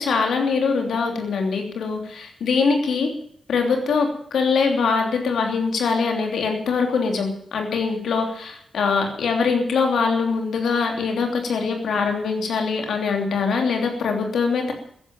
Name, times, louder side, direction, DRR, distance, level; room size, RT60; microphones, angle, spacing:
voice 1, 0.0-3.1 3.5-14.7, left 5 dB, 85° left, 3 dB, 3.1 m, -23 dB
14.5 x 11.0 x 8.9 m, 0.68 s
wide cardioid pair, 145°, 0 cm